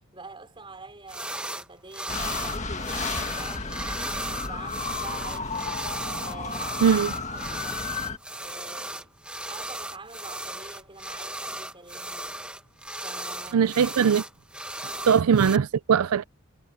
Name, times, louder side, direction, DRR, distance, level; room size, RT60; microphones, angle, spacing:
voice 1, 0.0-3.8 4.4-5.9 6.2-7.0 7.3-7.9 8.4-9.1 9.5-12.4 13.0-14.0 14.8-15.2, right 3 dB, 25° right, 4.2 m, -46 dB
sound 1, 1.1-1.7 1.9-15.6, right 1 dB, 5° right, 1.4 m, -36 dB
sound 2, 2.1-8.2, left 4 dB, 35° left, 1.8 m, -33 dB
voice 2, 6.8-7.1 13.5-14.2 15.1-16.2, right 7 dB, 85° right, 0.4 m, -20 dB
head